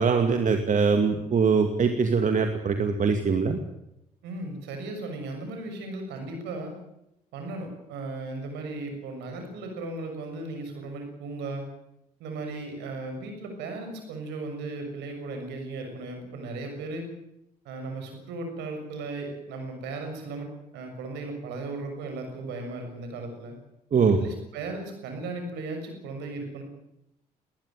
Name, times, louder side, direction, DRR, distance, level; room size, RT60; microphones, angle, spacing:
voice 1, 0.0-3.6 23.9-24.2, right 5 dB, 40° right, 7 dB, 2.4 m, -22 dB
voice 2, 4.2-6.7 7.3-11.7 12.2-17.1 17.6-23.5 24.2-26.6, right 2 dB, 65° right, 5 dB, 6.7 m, -36 dB
20.5 x 20.0 x 9.3 m, 0.85 s
figure-of-eight pair, 45°, 19 cm